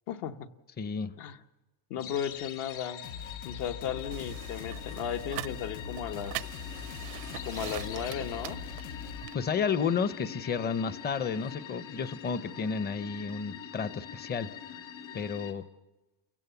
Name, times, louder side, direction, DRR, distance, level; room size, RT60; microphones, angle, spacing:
voice 1, 0.1-0.5 1.2-1.4 1.9-3.0 3.4-6.3 7.4-8.6, left 8 dB, 65° left, 7 dB, 1.3 m, -35 dB
voice 2, 0.8-1.1 9.3-14.5 15.1-15.6, left 6 dB, 25° left, 15 dB, 0.7 m, -31 dB
sound 1, 2.0-15.5, left 9 dB, 45° left, 2.2 m, -44 dB
sound 2, 3.0-9.2, left 7 dB, 90° left, 0.9 m, -42 dB
sound 3, 4.1-9.3, right 21 dB, 85° right, 0.6 m, -43 dB
29.0 x 16.5 x 7.0 m, 1.1 s
cardioid pair, 150°, 43 cm